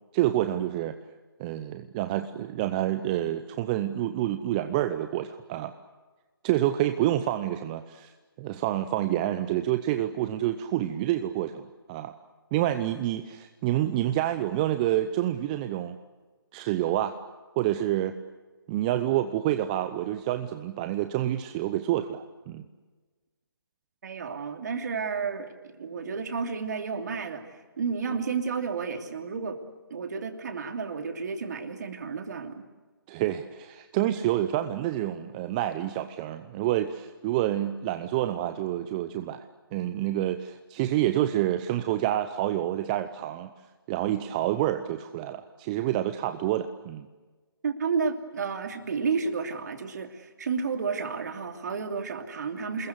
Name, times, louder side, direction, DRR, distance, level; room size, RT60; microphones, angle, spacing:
voice 1, 0.1-1.0 1.4-5.7 6.4-8.1 8.4-12.1 12.5-16.0 16.5-17.2 17.6-18.2 18.7-22.6 33.1-43.5 43.9-47.1, right 13 dB, 20° right, 9 dB, 0.7 m, -28 dB
voice 2, 24.0-27.5 27.8-29.6 29.9-32.7 47.6-52.9, right 5 dB, 45° right, 5 dB, 2.9 m, -31 dB
27.5 x 21.0 x 8.1 m, 1.3 s
figure-of-eight pair, 150°, 13 cm